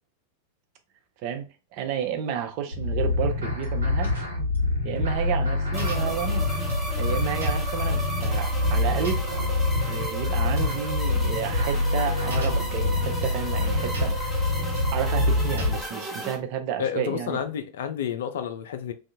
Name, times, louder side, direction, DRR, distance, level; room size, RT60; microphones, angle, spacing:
voice 1, 1.7-4.1 4.8-6.5 7.0-9.2 9.8-14.2 14.9-17.4, right 8 dB, 45° right, 0.5 m, -31 dB
sound 1, 2.7-15.8, left 2 dB, 70° right, 1.1 m, -26 dB
sound 2, 5.7-16.4, right 1 dB, ahead, 0.8 m, -35 dB
voice 2, 16.8-18.9, left 8 dB, 60° left, 0.3 m, -30 dB
2.6 x 2.3 x 2.6 m
figure-of-eight pair, 90°, 0 cm